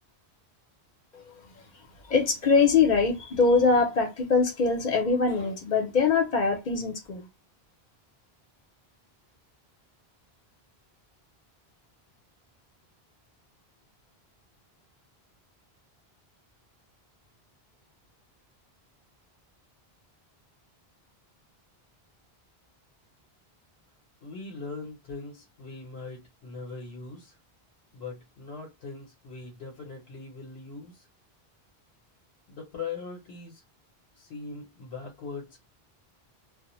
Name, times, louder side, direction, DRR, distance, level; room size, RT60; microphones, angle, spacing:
voice 1, 2.1-7.3, left 4 dB, 50° left, 0.7 m, -23 dB
voice 2, 24.2-27.4 27.9-31.1 32.5-33.6 34.1-35.7, left 4 dB, 80° left, 1.0 m, -40 dB
2.1 x 2.0 x 2.9 m
omnidirectional pair, 1.1 m